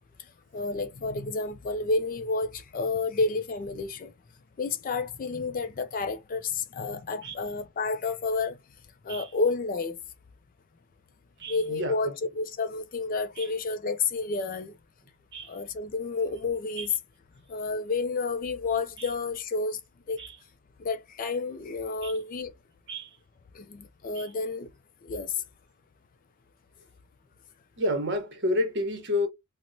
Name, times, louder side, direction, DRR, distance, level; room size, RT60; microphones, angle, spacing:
voice 1, 0.5-4.1 4.6-8.6 9.0-10.0 11.5-14.7 15.5-16.9 17.5-19.8 20.1-20.2 20.8-22.5 23.5-24.7 25.0-25.3, left 3 dB, 40° left, 0.3 m, -30 dB
voice 2, 11.4-11.9 13.4-13.5 15.3-15.5 16.8-16.9 19.0-19.1 20.2-20.3 22.0-22.1 22.9-23.1 24.1-24.3 27.8-29.3, left 1 dB, 55° right, 1.0 m, -30 dB
4.3 x 2.1 x 2.6 m
head